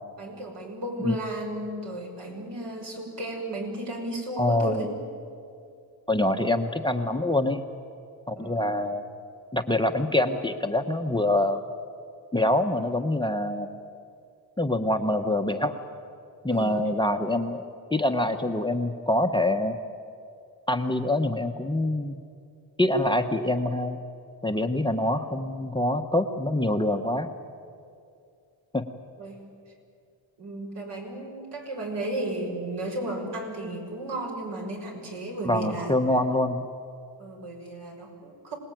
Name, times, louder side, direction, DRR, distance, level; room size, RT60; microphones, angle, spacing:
voice 1, 0.2-4.9 8.3-8.7 16.5-16.8 29.2-29.4 30.4-35.9 37.2-38.5, right 1 dB, 60° right, 1 dB, 6.4 m, -34 dB
voice 2, 4.4-4.9 6.1-7.6 8.3-9.0 9.5-11.6 12.3-13.7 14.6-15.8 16.4-17.6 17.9-19.8 20.7-22.2 22.8-24.0 24.4-27.3 28.7-28.8 35.4-36.6, left 1 dB, 10° left, 7 dB, 1.0 m, -25 dB
26.5 x 19.5 x 9.2 m, 2.5 s
cardioid pair, 105°, 46 cm